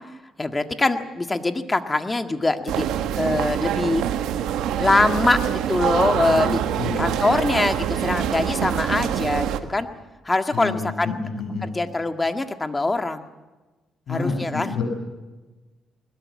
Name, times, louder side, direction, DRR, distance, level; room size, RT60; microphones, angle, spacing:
voice 1, 0.4-2.9 3.2-4.0 4.8-9.9 10.3-11.1 11.6-13.3 14.1-14.8, left 2 dB, 20° left, 8 dB, 1.7 m, -23 dB
sound 1, 2.7-9.6, right 10 dB, 90° right, 1.4 m, -25 dB
voice 2, 6.1-7.2 10.5-11.7 14.1-14.8, left 4 dB, 65° left, 4 dB, 7.5 m, -29 dB
21.0 x 20.5 x 8.6 m, 1.2 s
cardioid pair, 90°, 0 cm